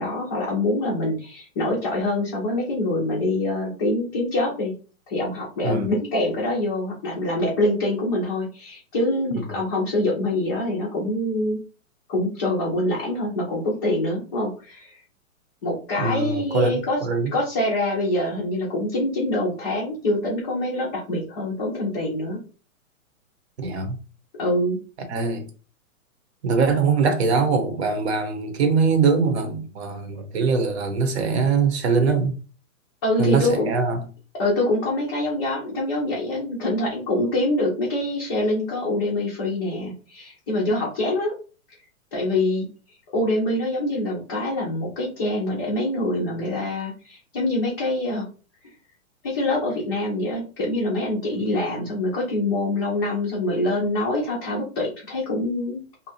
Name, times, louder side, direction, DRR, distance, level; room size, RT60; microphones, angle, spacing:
voice 1, 0.0-4.7 5.1-11.6 12.1-15.0 15.6-17.0 17.3-22.4 24.4-24.8 33.0-33.7 34.3-41.3 42.1-42.7 43.1-48.3 49.2-56.1, left 1 dB, 15° left, 0.5 m, -25 dB
voice 2, 16.0-17.3 23.6-24.0 25.1-25.4 26.4-32.4 33.2-34.0, right 5 dB, 50° right, 0.9 m, -22 dB
2.8 x 2.3 x 4.2 m
hypercardioid pair, 160°, 42 cm